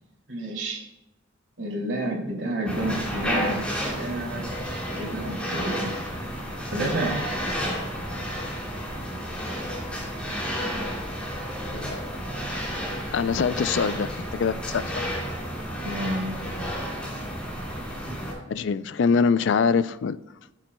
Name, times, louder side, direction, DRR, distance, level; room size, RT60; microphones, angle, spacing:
voice 1, 0.3-0.9 1.6-3.7 4.0-4.4 4.7-6.0 6.7-7.2 15.8-16.4, right 1 dB, 65° right, -2 dB, 2.5 m, -30 dB
sound 1, 2.7-18.3, equal, 5° left, 2.8 m, -31 dB
voice 2, 13.1-15.1 18.5-20.2, left 5 dB, 65° left, 15 dB, 0.3 m, -24 dB
14.5 x 7.4 x 2.2 m, 0.97 s
head